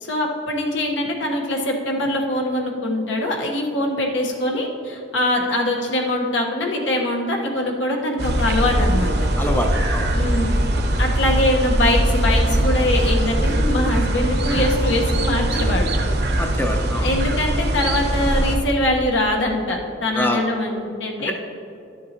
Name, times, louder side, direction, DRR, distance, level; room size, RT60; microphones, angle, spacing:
voice 1, 0.0-9.1 10.1-10.6 11.0-15.9 17.0-21.3, left 1 dB, 80° left, 0 dB, 1.2 m, -23 dB
sound 1, 8.2-18.6, right 1 dB, 60° right, 0.9 m, -21 dB
voice 2, 9.4-10.1 16.3-17.1 20.1-20.4, left 1 dB, 10° left, 3 dB, 0.5 m, -25 dB
12.0 x 7.3 x 2.9 m, 2.7 s
head